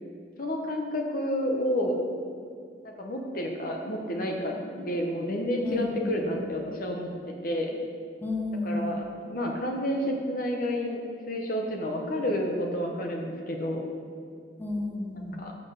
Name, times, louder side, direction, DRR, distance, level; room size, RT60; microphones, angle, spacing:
voice 1, 0.4-2.0 2.8-7.1 7.4-7.8 8.6-11.0 11.3-13.8 15.4-15.5, equal, 50° left, 1 dB, 0.9 m, -30 dB
voice 2, 5.6-6.4 8.2-9.0 14.6-15.4, left 2 dB, 10° left, -1 dB, 0.9 m, -32 dB
6.1 x 6.0 x 6.4 m, 2.2 s
head